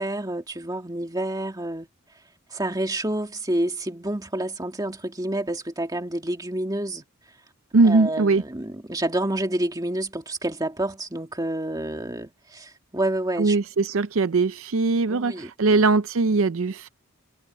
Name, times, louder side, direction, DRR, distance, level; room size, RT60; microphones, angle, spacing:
voice 1, 0.0-1.9 2.5-7.0 7.8-13.6 15.1-15.9, right 1 dB, 15° right, 2.2 m, -29 dB
voice 2, 7.7-8.4 13.4-16.9, right 3 dB, 65° right, 0.5 m, -21 dB
head